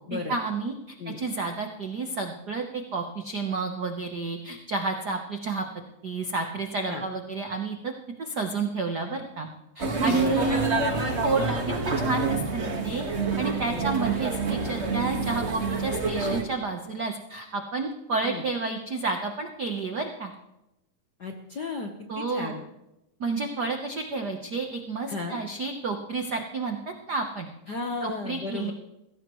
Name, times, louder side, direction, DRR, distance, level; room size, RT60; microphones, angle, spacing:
voice 1, 0.1-5.6 6.0-7.9 8.2-9.5 9.7-10.8 11.2-13.0 13.4-20.3 22.1-22.6 23.2-27.5 28.0-28.7, right 3 dB, 85° right, 4 dB, 0.9 m, -30 dB
sound 1, 9.8-16.4, right 3 dB, 35° right, 1.2 m, -28 dB
voice 2, 10.0-10.9 13.7-13.9 18.2-18.4 21.2-22.6 25.1-25.4 27.7-28.7, left 4 dB, 70° left, 3 dB, 1.0 m, -34 dB
21.0 x 17.0 x 3.1 m, 0.89 s
omnidirectional pair, 3.6 m